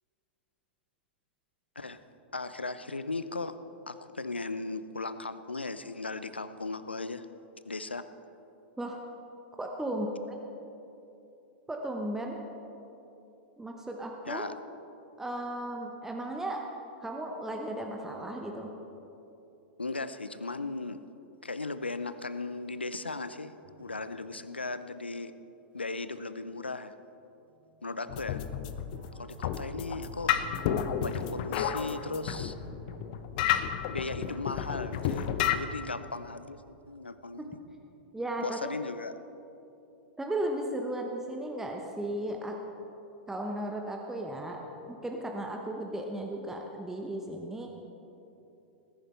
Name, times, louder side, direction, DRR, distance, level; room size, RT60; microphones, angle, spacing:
voice 1, 2.3-7.3 7.6-8.1 14.3-14.5 19.8-21.0 21.4-25.3 25.7-26.9 27.8-28.4 29.1-30.4 31.0-32.6 33.9-37.6 38.4-39.1, left 3 dB, 85° left, 12 dB, 0.6 m, -37 dB
voice 2, 9.6-10.1 11.7-12.4 13.6-14.4 15.2-16.6 17.0-18.7 38.1-38.6 40.2-42.6 43.3-44.6 44.9-47.7, right 1 dB, 5° right, 1 dB, 1.1 m, -35 dB
sound 1, 23.6-25.4 26.0-26.4 27.2-33.1, right 4 dB, 55° right, 2.7 m, -51 dB
sound 2, 28.1-35.6, left 9 dB, 50° left, 0.8 m, -31 dB
19.5 x 10.5 x 4.4 m, 2.9 s
figure-of-eight pair, 95°, 6 cm